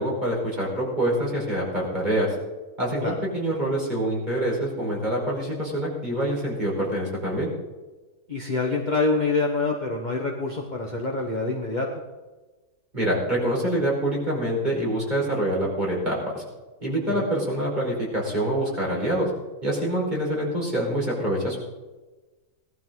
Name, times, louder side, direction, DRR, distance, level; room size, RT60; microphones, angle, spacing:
voice 1, 0.0-2.3 2.8-7.5 12.9-16.4 16.8-19.3 19.6-21.6, right 1 dB, 25° right, -4 dB, 5.2 m, -26 dB
voice 2, 8.3-11.9 17.1-17.2, left 3 dB, 30° left, -1 dB, 1.4 m, -26 dB
19.0 x 12.5 x 4.0 m, 1.2 s
omnidirectional pair, 1.8 m